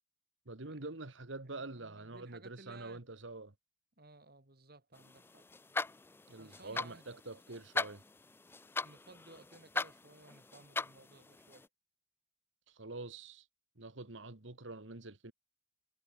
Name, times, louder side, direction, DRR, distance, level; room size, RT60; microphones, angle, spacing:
voice 1, 0.5-3.5 6.3-8.0 12.7-13.5 13.8-15.3, right 2 dB, 70° right, 1.8 m, -46 dB
voice 2, 1.5-3.0 4.0-5.4 6.4-7.0 8.8-11.7, right 3 dB, 50° right, 2.2 m, -58 dB
sound 1, 5.0-11.7, left 3 dB, 10° left, 0.3 m, -41 dB
head